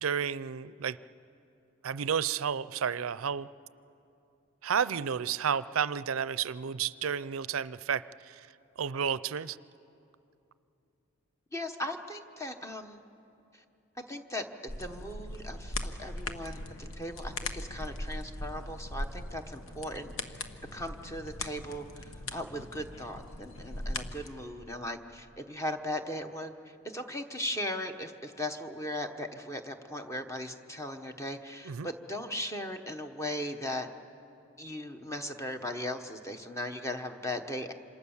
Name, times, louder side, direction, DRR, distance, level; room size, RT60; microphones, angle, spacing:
voice 1, 0.0-1.0 1.8-3.5 4.6-8.4 8.8-9.6 31.6-31.9, right 7 dB, 85° right, 17 dB, 0.5 m, -31 dB
voice 2, 11.5-13.0 13.5-13.6 14.1-20.4 20.7-33.9 34.6-37.7, left 1 dB, 15° left, 6 dB, 1.1 m, -38 dB
sound 1, 14.7-24.3, left 2 dB, 85° left, 1.2 m, -40 dB
27.0 x 26.0 x 7.2 m, 2.8 s
head